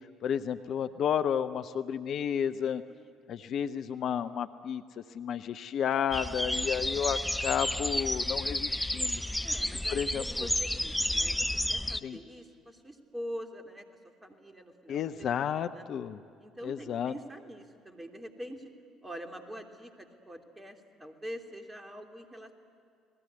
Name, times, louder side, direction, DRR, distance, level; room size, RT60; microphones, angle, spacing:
voice 1, 0.2-2.8 3.3-9.2 9.9-10.5 12.0-12.2 14.9-16.2 16.6-17.1, left 8 dB, 50° left, 11 dB, 0.7 m, -32 dB
sound 1, 6.1-12.0, left 1 dB, 5° left, 0.8 m, -31 dB
voice 2, 9.4-13.9 14.2-15.8 16.4-18.7 19.0-22.5, equal, 15° right, 4 dB, 3.1 m, -45 dB
30.0 x 20.0 x 9.6 m, 2.3 s
figure-of-eight pair, 50°, 0 cm